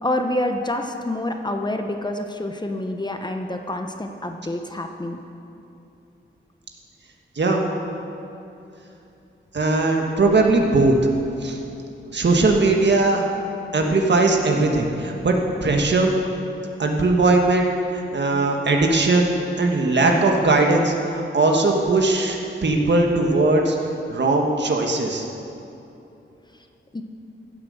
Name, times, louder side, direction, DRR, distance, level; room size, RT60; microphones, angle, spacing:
voice 1, 0.0-5.2 26.9-27.0, left 1 dB, 20° left, 4 dB, 0.9 m, -27 dB
voice 2, 9.5-10.9 11.4-11.6 12.1-13.2 13.7-15.3 15.6-16.1 16.8-17.7 17.9-22.4 22.6-23.8 24.1-25.3, right 2 dB, 60° right, 2 dB, 1.6 m, -19 dB
15.0 x 8.0 x 6.5 m, 2.8 s
wide cardioid pair, 100°, 21 cm